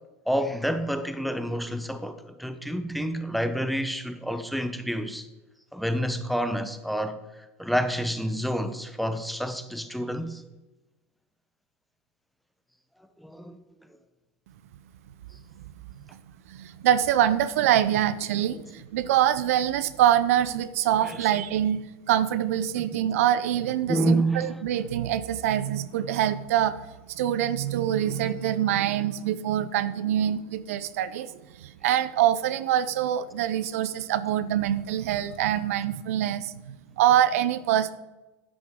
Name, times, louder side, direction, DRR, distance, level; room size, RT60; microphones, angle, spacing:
voice 1, 0.3-5.3 5.7-10.4 13.2-13.6 18.4-18.6 21.0-21.2 22.8-22.9 23.9-24.6, right 1 dB, ahead, 0.8 m, -28 dB
voice 2, 16.5-26.8 27.1-37.9, right 11 dB, 80° right, 0.5 m, -25 dB
9.7 x 8.4 x 3.7 m
supercardioid pair, 105°, 8 cm